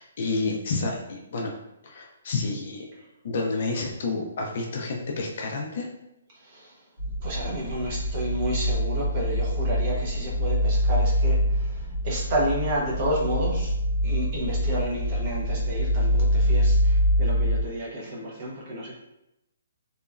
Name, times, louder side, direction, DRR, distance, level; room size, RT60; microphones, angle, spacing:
voice 1, 0.0-1.5 1.8-2.9 3.2-5.9, left 3 dB, 40° left, 0 dB, 0.4 m, -29 dB
voice 2, 6.3-6.7 7.2-13.7 14.0-18.9, right 1 dB, 30° right, -4 dB, 0.6 m, -31 dB
sound 1, 7.0-17.6, equal, 80° right, 1.0 m, -24 dB
2.9 x 2.1 x 2.4 m, 0.89 s
hypercardioid pair, 175°, 0 cm